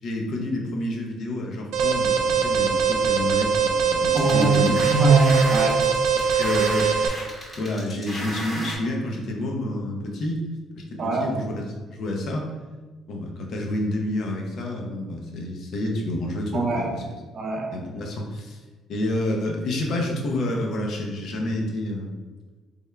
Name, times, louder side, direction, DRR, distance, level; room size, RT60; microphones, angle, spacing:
voice 1, 0.0-4.8 6.1-7.3 7.5-10.4 10.7-12.5 13.1-17.0 17.7-18.6 18.9-22.2, left 1 dB, 60° left, 1 dB, 0.6 m, -29 dB
Alarm, 1.7-7.1, right 6 dB, 85° right, 0.3 m, -22 dB
sound 1, 4.1-8.8, equal, 25° left, 0.9 m, -35 dB
voice 2, 4.1-4.6 4.9-5.8 11.0-11.3 16.5-16.9 17.3-17.7, right 4 dB, 45° right, 0 dB, 0.6 m, -21 dB
3.5 x 2.1 x 3.3 m, 1.3 s
cardioid pair, 105°, 0 cm